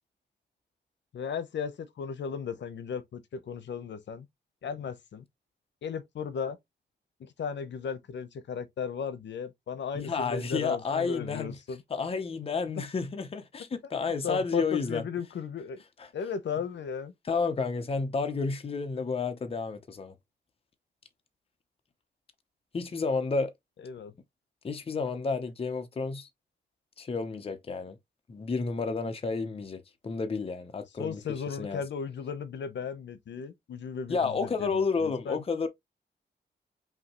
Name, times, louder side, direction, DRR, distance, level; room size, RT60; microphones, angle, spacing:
voice 1, 1.1-4.3 4.6-5.2 5.8-6.6 7.2-11.8 12.8-12.9 14.2-15.8 16.1-17.1 23.8-24.1 31.0-35.4, left 6 dB, 75° left, 0.8 m, -36 dB
voice 2, 9.9-11.6 11.9-15.0 16.0-16.1 17.3-20.1 22.7-23.5 24.6-26.3 27.0-28.0 28.3-31.2 31.6-31.8 34.1-35.7, left 4 dB, 30° left, 0.7 m, -31 dB
5.7 x 2.8 x 2.9 m
wide cardioid pair, 170°, 19 cm